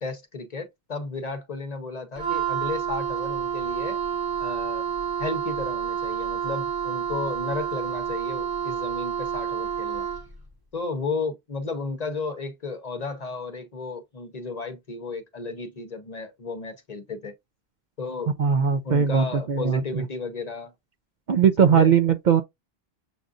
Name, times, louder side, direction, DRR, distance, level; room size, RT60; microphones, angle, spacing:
voice 1, 0.0-4.0 4.4-4.8 5.2-10.1 10.7-17.3 18.0-18.3 18.8-20.7 21.6-22.0, left 3 dB, 45° left, 0.8 m, -33 dB
Wind instrument woodwind instrument, 2.2-10.3, right 8 dB, 20° right, 1.0 m, -29 dB
voice 2, 18.4-20.0 21.3-22.4, right 7 dB, 55° right, 0.6 m, -20 dB
7.0 x 2.4 x 2.4 m
omnidirectional pair, 1.1 m